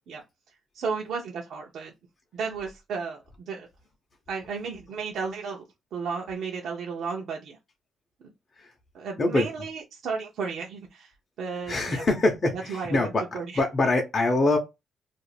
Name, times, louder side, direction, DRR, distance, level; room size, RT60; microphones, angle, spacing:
voice 1, 0.7-1.9 2.3-3.7 4.3-5.6 5.9-7.6 8.9-11.1 11.4-12.0 12.5-13.6, right 5 dB, 70° right, 0.6 m, -33 dB
voice 2, 11.7-14.6, left 2 dB, 35° left, 0.7 m, -24 dB
2.4 x 2.0 x 3.1 m
cardioid pair, 90°, 0 cm